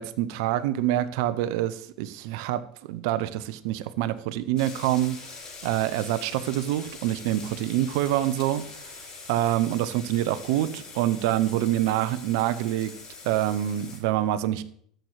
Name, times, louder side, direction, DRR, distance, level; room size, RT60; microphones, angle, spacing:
voice 1, 0.0-2.6 2.9-5.2 5.6-8.6 9.3-12.9 13.2-14.6, right 13 dB, 70° right, 14 dB, 1.0 m, -26 dB
sound 1, 4.6-14.0, left 4 dB, 35° left, 6.3 m, -43 dB
13.0 x 8.1 x 4.9 m, 0.62 s
hypercardioid pair, 85°, 3 cm